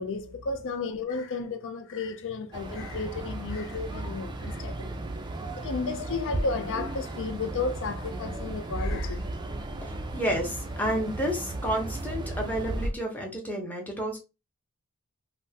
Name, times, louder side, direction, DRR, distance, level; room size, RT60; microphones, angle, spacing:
voice 1, 0.0-4.9 5.5-9.3, left 4 dB, 60° left, 0.5 m, -33 dB
sound 1, 2.5-12.9, right 2 dB, 20° right, 0.4 m, -35 dB
voice 2, 9.8-14.2, equal, 10° left, 0.8 m, -30 dB
3.4 x 2.1 x 2.7 m
head